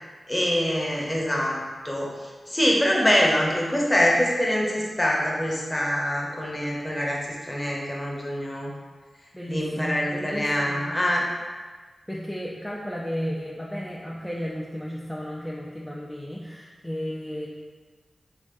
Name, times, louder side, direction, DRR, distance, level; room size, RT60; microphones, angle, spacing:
voice 1, 0.3-1.6 1.8-8.7 9.5-11.2, equal, 20° left, -2 dB, 0.8 m, -24 dB
voice 2, 9.3-10.9 12.1-17.5, equal, 5° left, -4 dB, 0.4 m, -33 dB
3.1 x 2.6 x 3.6 m, 1.4 s
cardioid pair, 40°, 0 cm